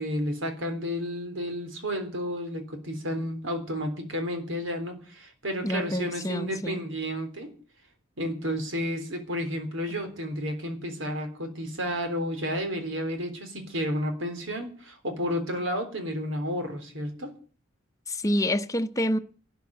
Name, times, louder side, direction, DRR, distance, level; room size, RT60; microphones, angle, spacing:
voice 1, 0.0-7.5 8.2-17.3, equal, 85° right, 3.7 m, -31 dB
voice 2, 5.6-6.8 18.1-19.2, left 1 dB, 15° left, 0.8 m, -27 dB
12.5 x 10.5 x 8.2 m
head